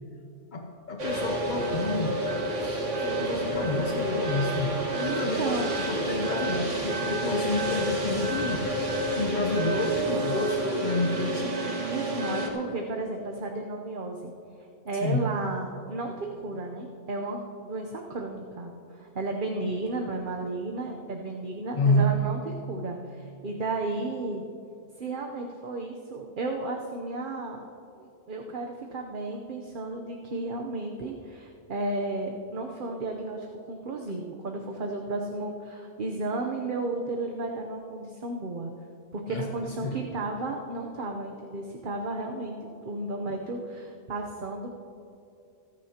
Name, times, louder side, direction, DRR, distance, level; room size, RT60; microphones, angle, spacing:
voice 1, 0.5-2.3 3.0-11.7 15.0-15.3 21.7-22.2 39.3-40.1, left 2 dB, 45° left, 2 dB, 0.9 m, -29 dB
sound 1, 1.0-12.5, right 1 dB, 90° right, 1.9 m, -29 dB
voice 2, 5.1-5.8 11.9-14.3 14.8-24.4 25.0-27.6 28.0-38.7 39.1-44.8, right 2 dB, 50° right, 2 dB, 0.9 m, -33 dB
27.0 x 9.4 x 2.9 m, 2.7 s
omnidirectional pair, 1.2 m